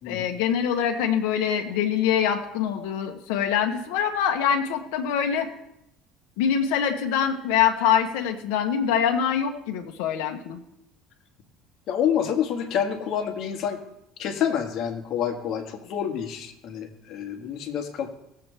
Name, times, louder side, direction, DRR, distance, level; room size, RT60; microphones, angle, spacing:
voice 1, 0.1-5.5 6.4-10.6, left 8 dB, 90° left, 4 dB, 1.0 m, -24 dB
voice 2, 11.9-13.8 14.2-18.1, left 8 dB, 55° left, 4 dB, 1.7 m, -28 dB
18.0 x 7.7 x 3.4 m, 0.81 s
cardioid pair, 125°, 0 cm